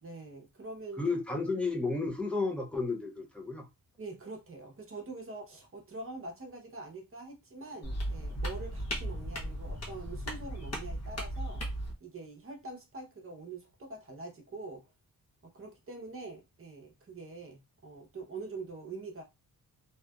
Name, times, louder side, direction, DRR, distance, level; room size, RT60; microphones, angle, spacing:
voice 1, 0.0-1.0 4.0-11.6 12.0-14.8 15.4-19.2, right 3 dB, 40° right, 0.8 m, -44 dB
voice 2, 1.0-3.7, left 3 dB, 5° left, 0.5 m, -32 dB
sound 1, 7.8-11.9, equal, 45° left, 1.0 m, -36 dB
2.8 x 2.4 x 2.2 m
wide cardioid pair, 135°, 35 cm